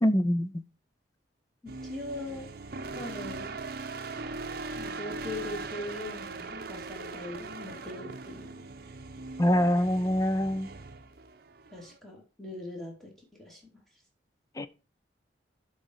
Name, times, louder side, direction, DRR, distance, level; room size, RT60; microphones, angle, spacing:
voice 1, 0.0-0.6 9.4-10.7 14.6-14.7, equal, 20° left, 0.5 m, -25 dB
sound 1, 1.7-12.0, right 3 dB, 60° right, 0.8 m, -40 dB
voice 2, 1.8-2.5 2.9-3.6 4.7-8.6 11.7-13.1 13.4-13.6, left 2 dB, ahead, 2.7 m, -40 dB
11.5 x 4.0 x 4.6 m
head